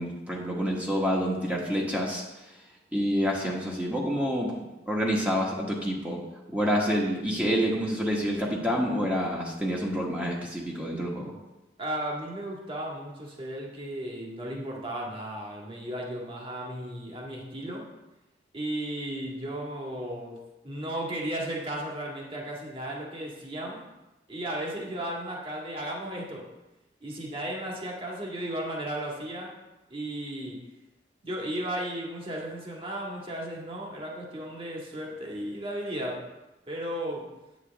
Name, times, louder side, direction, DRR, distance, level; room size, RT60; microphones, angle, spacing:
voice 1, 0.0-2.2 2.9-4.5 4.9-6.2 6.5-11.3, equal, 10° right, -3 dB, 1.3 m, -28 dB
voice 2, 11.8-17.9 18.5-20.4 20.6-23.9 24.3-26.5 27.0-29.6 29.9-30.6 31.2-36.2 36.7-37.2, right 1 dB, 30° right, -2 dB, 1.8 m, -35 dB
9.2 x 8.2 x 3.5 m, 1.0 s
head